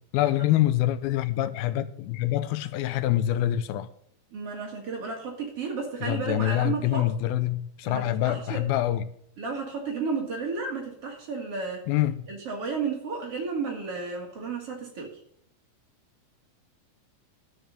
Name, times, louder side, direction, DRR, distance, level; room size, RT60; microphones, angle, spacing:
voice 1, 0.1-3.9 6.0-9.0 11.9-12.2, left 13 dB, 85° left, 2.5 m, -25 dB
voice 2, 4.3-7.1 7.8-8.6 9.4-11.8 12.3-15.2, right 4 dB, 45° right, 2.6 m, -32 dB
13.0 x 6.3 x 6.7 m
omnidirectional pair, 4.3 m